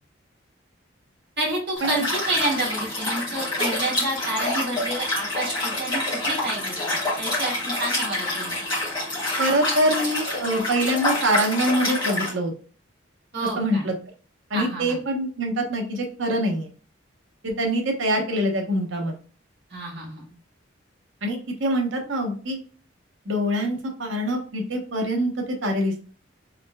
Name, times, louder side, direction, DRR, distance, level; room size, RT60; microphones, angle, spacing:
voice 1, 1.4-8.6 13.3-13.9 14.5-15.0 19.7-20.3, right 1 dB, 55° right, -3 dB, 1.7 m, -29 dB
Liquid, 1.8-12.3, left 2 dB, 20° left, 1.5 m, -27 dB
voice 2, 9.4-12.5 13.6-13.9 14.5-16.7 17.4-19.1 21.2-22.6 23.3-26.1, right 1 dB, 75° right, 2 dB, 0.9 m, -24 dB
3.7 x 3.1 x 2.2 m, 0.40 s
head